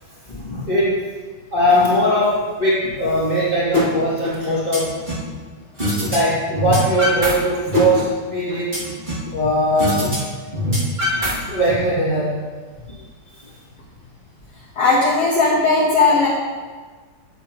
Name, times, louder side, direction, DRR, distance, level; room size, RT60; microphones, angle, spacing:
voice 1, 0.2-1.0 1.5-4.9 6.1-8.8 9.3-10.1 11.5-12.4, equal, 25° left, -9 dB, 0.9 m, -20 dB
sound 1, 3.7-3.9 4.2-5.3 5.8-6.2 6.4-7.3 7.6-9.3 9.8-10.2 10.4-11.7, left 1 dB, 80° right, 0.4 m, -22 dB
voice 2, 14.8-16.3, left 3 dB, 60° left, -7 dB, 2.1 m, -16 dB
11.0 x 7.5 x 3.1 m, 1.4 s
omnidirectional pair, 5.2 m